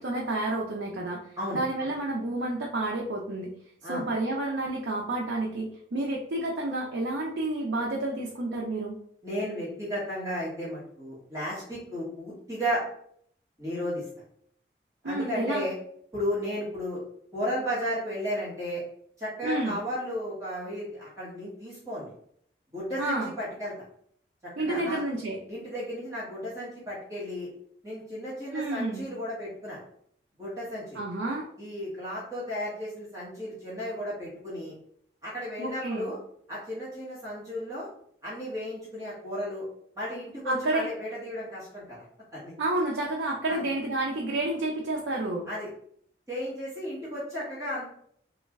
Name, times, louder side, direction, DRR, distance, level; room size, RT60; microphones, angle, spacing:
voice 1, 0.0-1.2 1.5-3.5 3.9-8.9 15.0-15.7 19.4-19.8 23.0-23.3 24.6-25.4 28.5-29.1 30.9-31.5 35.6-36.1 40.4-40.9 42.6-45.5, right 2 dB, 90° right, -2 dB, 0.5 m, -30 dB
voice 2, 9.2-12.8 13.6-14.0 15.0-15.8 16.1-17.0 17.3-18.8 19.2-22.1 22.7-23.7 24.4-25.0 25.5-27.5 27.8-29.8 30.4-31.0 31.6-34.7 35.2-36.2 36.5-37.9 38.2-39.7 40.0-42.0 42.3-42.5 43.5-43.6 45.5-45.7 46.3-47.9, equal, 20° right, -8 dB, 1.0 m, -34 dB
3.1 x 2.1 x 3.5 m, 0.65 s
head